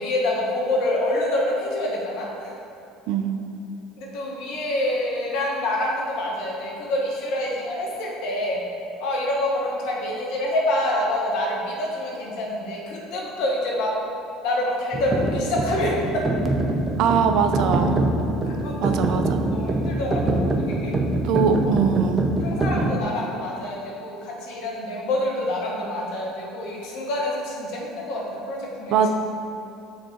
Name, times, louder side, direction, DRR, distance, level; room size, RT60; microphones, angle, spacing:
voice 1, 0.0-2.5 4.0-8.6 9.0-13.9 14.4-16.2 18.4-19.2 19.5-20.9 22.4-29.0, left 1 dB, 65° left, -2 dB, 1.4 m, -27 dB
sound 1, 14.9-22.9, right 2 dB, 30° right, 0.8 m, -24 dB
voice 2, 17.0-18.0 18.8-19.4 21.2-22.3 28.9-29.1, right 7 dB, 65° right, 7 dB, 0.4 m, -22 dB
6.6 x 3.9 x 4.4 m, 2.8 s
hypercardioid pair, 70°, 0 cm